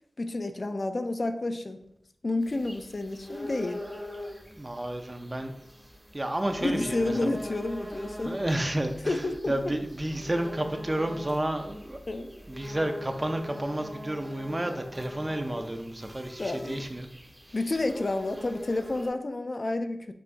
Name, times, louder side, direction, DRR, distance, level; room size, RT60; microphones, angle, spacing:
voice 1, 0.2-1.8 2.2-3.8 6.6-8.4 9.0-9.7 12.1-12.3 16.4-16.8 17.5-20.1, left 2 dB, 50° left, 7 dB, 0.4 m, -30 dB
sound 1, 2.4-19.1, left 1 dB, 10° right, 1.0 m, -42 dB
voice 2, 4.6-5.5 6.1-7.3 8.2-9.2 9.5-17.1, right 1 dB, 25° right, 6 dB, 0.5 m, -31 dB
6.0 x 3.5 x 2.5 m, 0.74 s
wide cardioid pair, 65°, 0 cm